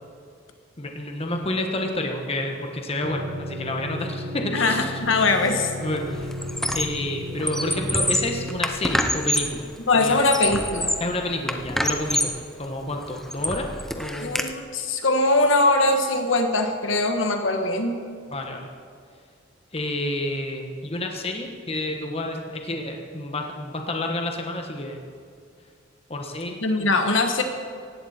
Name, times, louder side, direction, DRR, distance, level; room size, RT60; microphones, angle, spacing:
voice 1, 0.8-4.9 5.8-6.3 6.7-9.6 9.9-10.2 11.0-12.3 12.6-13.7 13.9-14.4 18.3-18.7 19.7-25.0 26.1-26.9, left 1 dB, 30° left, 3 dB, 1.3 m, -29 dB
sound 1, 3.0-8.6, equal, 30° right, 1.2 m, -34 dB
voice 2, 4.5-5.7 9.9-11.0 14.2-18.0 26.6-27.4, left 2 dB, 70° left, 5 dB, 1.4 m, -21 dB
Squeak, 5.2-5.5 5.8-7.0 7.4-9.6 10.1-11.1 11.5-12.4 12.9-14.5, left 1 dB, ahead, 0.7 m, -27 dB
18.0 x 15.5 x 4.4 m, 2.3 s
head